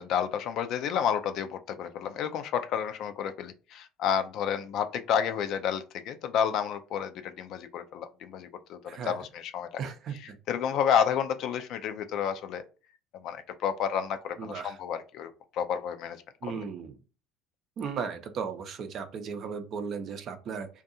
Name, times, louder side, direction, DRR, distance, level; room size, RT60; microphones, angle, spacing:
voice 1, 0.0-9.7 10.2-12.6 13.2-16.6, left 8 dB, 60° left, 9 dB, 0.4 m, -30 dB
voice 2, 8.8-9.2 9.8-10.1 14.4-14.7 16.4-17.0 17.8-20.7, right 6 dB, 50° right, 7 dB, 0.5 m, -36 dB
2.6 x 2.3 x 2.6 m, 0.34 s
hypercardioid pair, 65°, 0 cm